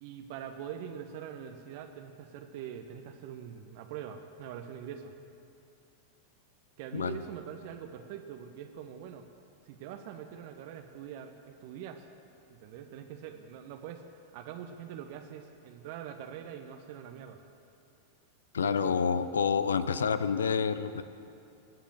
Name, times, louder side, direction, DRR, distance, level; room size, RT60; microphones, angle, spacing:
voice 1, 0.0-5.1 6.8-9.2 9.6-12.1 12.5-17.4 18.6-19.2, right 9 dB, 50° right, 5 dB, 0.9 m, -43 dB
voice 2, 18.5-21.0, left 6 dB, 70° left, 13 dB, 0.6 m, -28 dB
20.5 x 7.2 x 9.0 m, 2.5 s
figure-of-eight pair, 90°, 0 cm